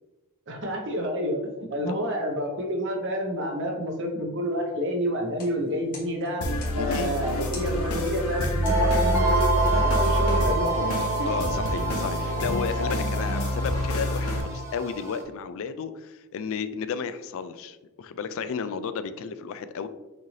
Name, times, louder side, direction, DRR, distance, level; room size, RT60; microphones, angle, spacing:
voice 1, 0.5-6.5 6.7-10.9 11.2-11.3, equal, 55° right, 1 dB, 1.0 m, -29 dB
sound 1, 5.2-11.0, left 3 dB, 40° left, 1.5 m, -49 dB
sound 2, 6.4-14.4, left 1 dB, 85° left, 0.8 m, -27 dB
voice 2, 6.8-7.2 11.0-19.9, left 6 dB, 65° left, 12 dB, 0.3 m, -33 dB
sound 3, 8.6-15.2, right 3 dB, 10° right, 0.6 m, -28 dB
6.2 x 2.7 x 3.2 m, 1.1 s
head